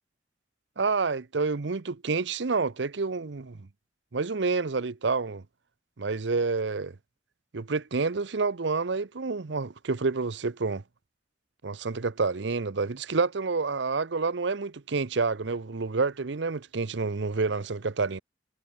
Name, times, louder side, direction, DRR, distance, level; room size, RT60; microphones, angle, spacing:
voice 1, 0.8-3.6 4.1-5.4 6.0-6.9 7.5-10.8 11.6-18.2, right 4 dB, 70° right, 0.7 m, -28 dB
head